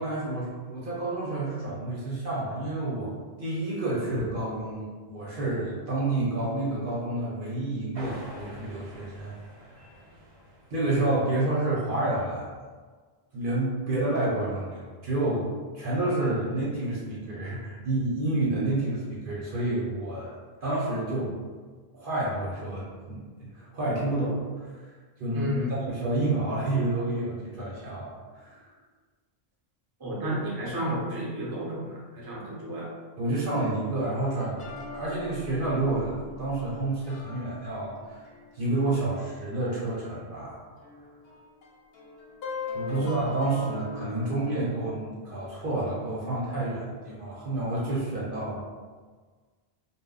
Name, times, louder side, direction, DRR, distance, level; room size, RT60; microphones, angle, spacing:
voice 1, 0.0-3.1 3.4-9.3 10.7-12.5 13.3-21.4 21.9-24.7 25.2-25.5 25.8-28.6 33.2-34.6 34.9-38.2 38.5-40.6 42.7-48.7, right 2 dB, 55° right, -7 dB, 0.9 m, -29 dB
sound 1, 7.9-11.4, equal, 75° right, 1.0 m, -47 dB
voice 2, 25.3-25.7 30.0-32.9 43.0-43.1, equal, 25° right, -6 dB, 0.6 m, -32 dB
sound 2, 34.6-39.8 40.1-40.2 40.8-44.6, left 4 dB, 70° left, 0.8 m, -40 dB
2.2 x 2.1 x 3.7 m, 1.5 s
omnidirectional pair, 1.1 m